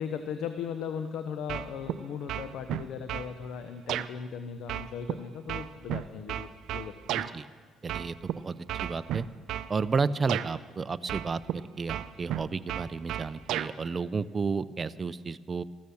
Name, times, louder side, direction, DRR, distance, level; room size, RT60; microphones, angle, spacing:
voice 1, 0.0-7.0, left 7 dB, 75° left, 8 dB, 0.8 m, -37 dB
sound 1, 1.5-2.0 2.3-3.3 3.9-4.1 4.7-7.3 7.9-8.3 8.7-9.7 10.3-10.5 11.1-11.6 11.9-13.7, right 12 dB, 80° right, 0.5 m, -33 dB
voice 2, 7.1-7.5 7.8-8.6 8.8-9.2 9.7-15.6, right 4 dB, 35° right, 14 dB, 0.5 m, -32 dB
14.0 x 13.0 x 7.1 m, 1.5 s
cardioid pair, 90°, 0 cm